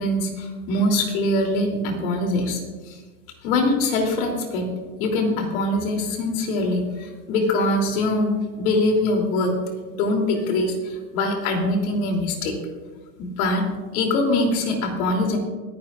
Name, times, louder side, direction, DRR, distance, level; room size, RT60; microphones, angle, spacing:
voice 1, 0.0-2.6 2.9-3.0 3.4-4.7 5.0-9.5 9.9-12.5 13.2-13.7 13.9-15.4, left 2 dB, 65° left, 2 dB, 3.2 m, -23 dB
24.0 x 10.0 x 2.5 m, 1.4 s
supercardioid pair, 125°, 45 cm